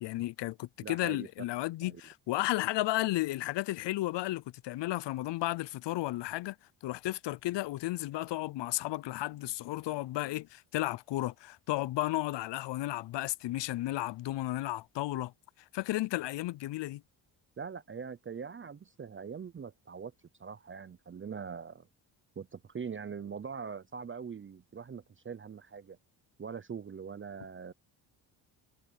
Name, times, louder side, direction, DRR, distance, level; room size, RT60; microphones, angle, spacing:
voice 1, 0.0-6.6 6.8-15.3 15.7-17.0, left 17 dB, 65° left, 0.7 m, -33 dB
voice 2, 0.8-1.3 1.8-2.0 17.6-20.1 20.4-21.9 22.4-26.0 26.4-27.7, right 6 dB, 25° right, 0.7 m, -42 dB
cardioid pair, 80°, 45 cm